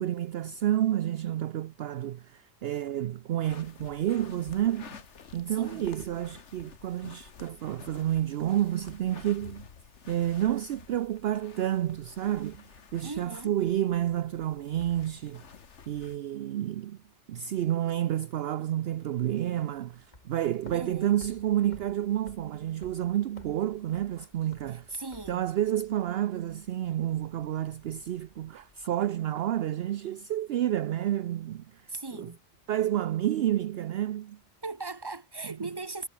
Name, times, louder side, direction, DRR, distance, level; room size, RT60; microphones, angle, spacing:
voice 1, 0.0-5.0 5.3-9.7 10.1-15.4 15.9-17.0 17.3-24.9 25.3-31.8 32.1-32.3 32.7-34.4, right 12 dB, 65° right, 0.8 m, -30 dB
sound 1, 3.4-16.2, left 6 dB, 90° left, 1.7 m, -50 dB
voice 2, 5.5-5.9 13.0-13.6 20.7-21.2 24.9-25.4 31.9-32.4 34.6-36.1, right 3 dB, 20° right, 1.4 m, -38 dB
sound 2, 18.9-28.9, left 1 dB, 40° left, 4.4 m, -56 dB
omnidirectional pair, 1.2 m